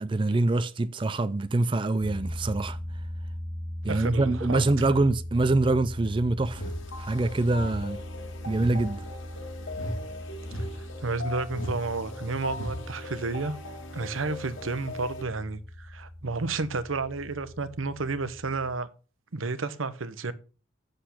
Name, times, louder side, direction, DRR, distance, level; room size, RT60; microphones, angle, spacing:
voice 1, 0.0-3.1 3.8-6.6 7.0-8.0 8.5-9.0, right 2 dB, 25° right, 0.4 m, -25 dB
sound 1, 2.0-18.7, left 1 dB, 10° left, 1.4 m, -40 dB
voice 2, 3.9-4.8 11.0-13.6 13.9-18.9 19.3-20.3, right 3 dB, 85° right, 0.9 m, -31 dB
sound 2, 6.4-15.2, left 2 dB, 75° left, 1.7 m, -41 dB
sound 3, 6.5-6.9 7.5-7.9 8.5-8.9 9.7-10.1 10.4-10.9 11.5-11.9 12.5-12.9, equal, 90° left, 3.2 m, -36 dB
8.1 x 6.6 x 5.7 m
head